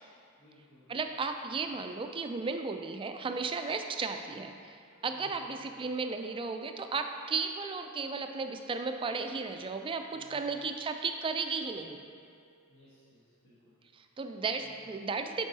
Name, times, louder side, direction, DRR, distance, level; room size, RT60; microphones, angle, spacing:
voice 1, 0.4-1.0 5.1-5.6 10.1-10.7 12.7-13.8 14.0-14.2 14.6-14.7, equal, 65° left, -10 dB, 1.5 m, -60 dB
voice 2, 0.9-4.8 5.0-12.0 13.9-15.5, right 4 dB, 25° right, 6 dB, 0.3 m, -34 dB
sound 1, 4.8-13.0, right 5 dB, 85° left, 1.7 m, -63 dB
7.3 x 4.7 x 4.0 m, 2.3 s
head